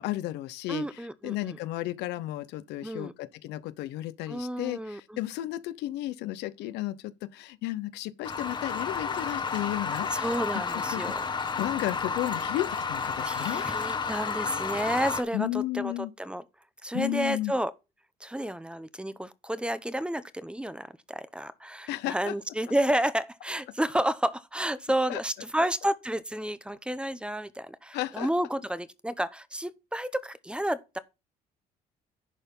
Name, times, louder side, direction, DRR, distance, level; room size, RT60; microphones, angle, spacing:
voice 1, 0.0-10.4 10.7-13.6 15.3-16.1 16.9-17.5 21.9-22.3 25.1-25.2 25.6-25.7 27.9-28.3, left 15 dB, 85° left, 0.8 m, -33 dB
voice 2, 0.7-1.6 2.8-3.1 4.3-5.2 10.1-11.2 13.2-15.9 16.2-16.4 16.8-17.7 18.2-31.0, right 1 dB, 5° right, 0.7 m, -31 dB
sound 1, 8.2-15.2, left 5 dB, 25° left, 1.1 m, -31 dB
11.0 x 4.5 x 5.4 m
cardioid pair, 110°, 17 cm